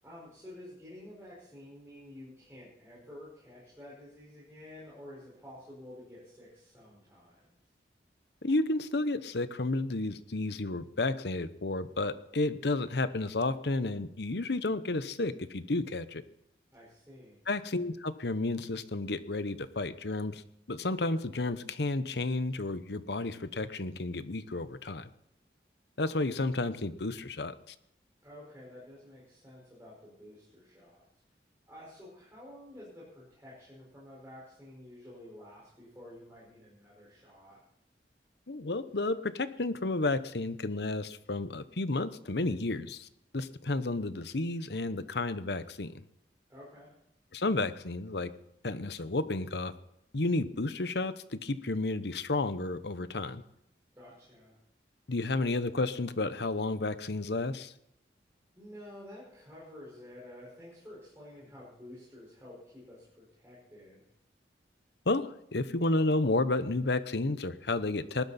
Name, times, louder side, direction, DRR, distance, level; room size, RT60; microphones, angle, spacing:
voice 1, 0.0-7.5 16.7-17.4 28.2-31.0 31.7-37.6 46.5-46.9 53.9-54.6 58.6-64.1, left 1 dB, 15° right, -7 dB, 5.2 m, -50 dB
voice 2, 8.4-16.2 17.5-20.4 20.7-25.1 26.0-27.7 38.5-43.1 43.3-45.9 47.3-48.3 48.6-49.7 50.1-53.4 55.1-57.7 65.1-68.2, left 2 dB, 70° left, 13 dB, 0.9 m, -31 dB
19.5 x 12.0 x 4.3 m, 0.78 s
head